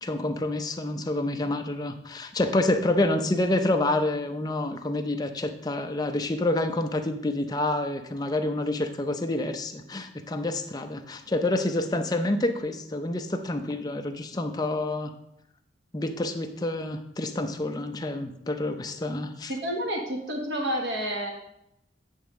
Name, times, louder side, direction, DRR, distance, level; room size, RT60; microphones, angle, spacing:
voice 1, 0.0-15.1 15.9-19.5, left 2 dB, 20° left, 6 dB, 0.5 m, -28 dB
voice 2, 19.6-21.3, equal, 75° right, 0 dB, 1.3 m, -29 dB
8.3 x 3.4 x 6.2 m, 0.81 s
head